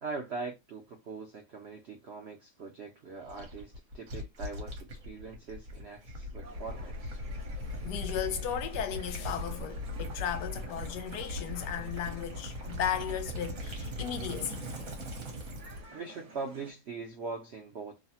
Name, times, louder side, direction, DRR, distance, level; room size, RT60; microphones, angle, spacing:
voice 1, 0.0-7.2 15.9-18.0, right 4 dB, 85° right, 0.5 m, -41 dB
Gurgling / Liquid, 3.3-15.9, left 1 dB, 55° right, 1.2 m, -39 dB
sound 1, 6.4-16.7, right 2 dB, 30° right, 0.8 m, -51 dB
voice 2, 7.8-14.6, left 9 dB, 80° left, 1.2 m, -35 dB
3.1 x 2.0 x 2.7 m
omnidirectional pair, 1.8 m